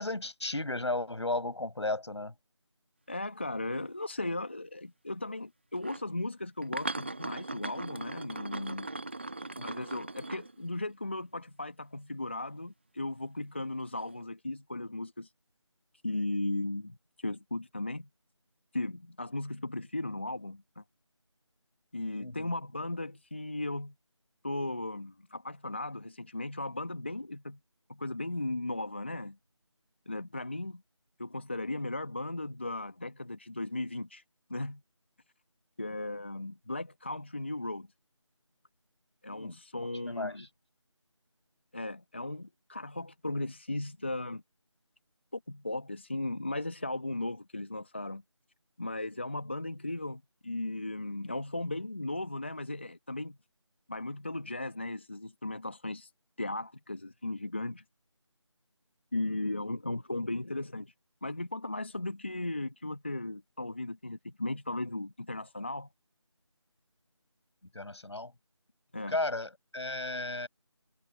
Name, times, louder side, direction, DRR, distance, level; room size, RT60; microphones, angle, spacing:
voice 1, 0.0-2.3 9.6-9.7 22.2-22.5 39.3-39.5 40.0-40.5 67.7-68.3 69.1-70.5, left 2 dB, 60° left, 5.7 m, -34 dB
voice 2, 3.1-8.9 9.6-15.3 16.0-18.1 18.7-20.8 21.9-23.9 24.4-27.6 27.9-29.4 30.1-30.8 31.2-34.2 34.5-34.8 35.8-37.9 39.2-40.5 41.7-44.4 45.3-48.2 48.8-53.4 53.9-56.1 56.4-57.8 59.1-60.9 61.2-65.9 68.9-69.2, left 2 dB, 20° left, 1.1 m, -36 dB
sound 1, 5.7-6.0 6.6-10.9 14.0-14.2, right 2 dB, 20° right, 1.3 m, -39 dB
figure-of-eight pair, 175°, 16 cm